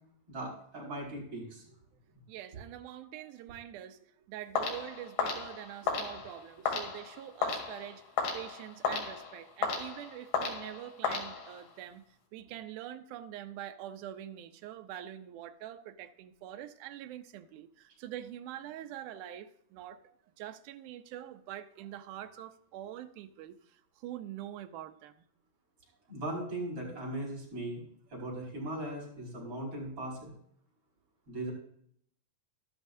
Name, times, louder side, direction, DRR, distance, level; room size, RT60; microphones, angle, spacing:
voice 1, 0.3-1.8 26.1-27.8 28.1-30.3 31.3-31.5, right 1 dB, 35° right, -4 dB, 6.1 m, -38 dB
voice 2, 2.3-4.0 4.3-8.0 8.3-12.0 12.3-20.0 20.4-25.3, right 12 dB, 80° right, 7 dB, 1.8 m, -45 dB
sound 1, 4.6-11.8, left 5 dB, 80° left, 4.1 m, -35 dB
12.5 x 12.0 x 2.7 m, 0.65 s
omnidirectional pair, 4.4 m